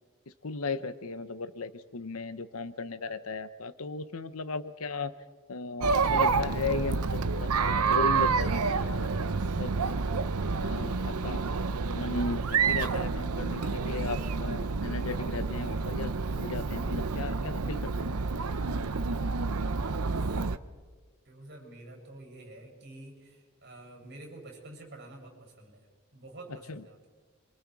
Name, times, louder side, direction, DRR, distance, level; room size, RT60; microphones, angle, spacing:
voice 1, 0.4-5.1 5.5-9.7 10.6-11.4 11.8-18.1 26.7-26.8, left 4 dB, 75° left, 13 dB, 0.9 m, -36 dB
Chatter, 5.8-20.6, right 4 dB, 90° right, 0.8 m, -29 dB
voice 2, 21.2-25.9 26.1-27.1, right 2 dB, 50° right, 1 dB, 7.6 m, -48 dB
27.5 x 25.0 x 4.8 m, 1.4 s
head